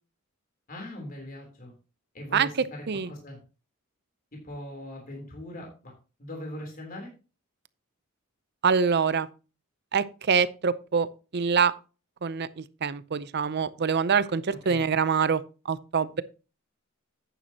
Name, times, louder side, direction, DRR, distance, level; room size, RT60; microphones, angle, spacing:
voice 1, 0.7-1.7 2.1-3.4 4.3-5.9 6.2-7.1 14.7-14.8, left 1 dB, 40° left, 3.4 m, -40 dB
voice 2, 8.6-9.3 9.9-11.1 11.3-11.7 12.2-15.4 15.7-16.2, right 6 dB, 50° right, 0.6 m, -25 dB
11.0 x 9.1 x 2.9 m
head